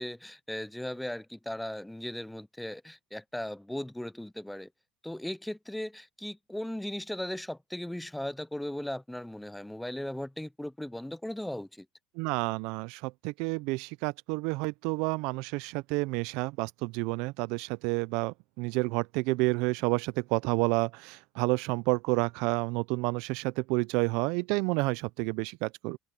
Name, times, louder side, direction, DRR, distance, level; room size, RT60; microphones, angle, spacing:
voice 1, 0.0-4.7 5.0-11.9, left 1 dB, 5° left, 0.5 m, -37 dB
voice 2, 12.2-26.0, right 25 dB, 75° right, 0.4 m, -30 dB
open air
supercardioid pair, 100°, 0 cm